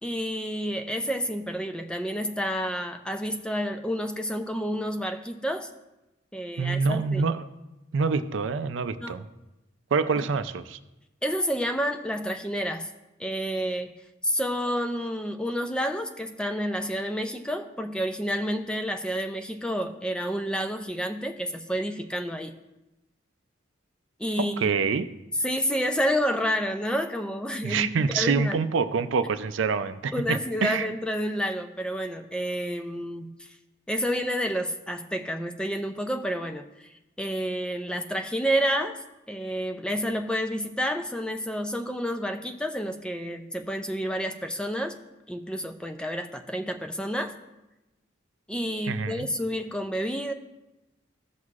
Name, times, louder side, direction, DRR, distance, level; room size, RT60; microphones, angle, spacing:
voice 1, 0.0-5.7 6.3-7.2 9.0-9.2 10.2-10.3 11.2-12.9 13.2-13.9 14.2-22.5 24.2-24.7 25.4-28.6 30.1-33.6 33.9-44.9 45.3-47.3 48.5-50.3, equal, 5° left, 6 dB, 0.4 m, -29 dB
voice 2, 6.6-7.4 7.9-9.2 9.9-10.8 24.6-25.1 27.6-30.9 48.9-49.3, right 5 dB, 70° right, 11 dB, 0.4 m, -26 dB
14.5 x 6.3 x 2.4 m, 1.0 s
head